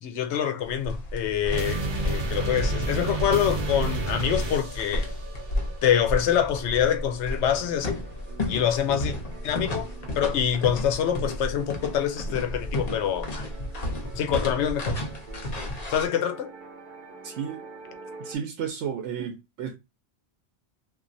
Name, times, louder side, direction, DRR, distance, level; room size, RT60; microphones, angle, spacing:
voice 1, 0.0-5.1 5.8-8.0 8.5-9.1 9.4-9.9 10.2-13.3 14.2-15.0 15.9-16.5, left 9 dB, 80° left, 0.9 m, -25 dB
sound 1, 0.6-16.1, left 1 dB, 45° left, 0.7 m, -33 dB
sound 2, 1.5-18.4, right 2 dB, 55° right, 0.7 m, -36 dB
voice 2, 17.2-17.6 18.2-19.7, right 8 dB, 90° right, 0.9 m, -32 dB
3.0 x 2.5 x 2.6 m
omnidirectional pair, 1.2 m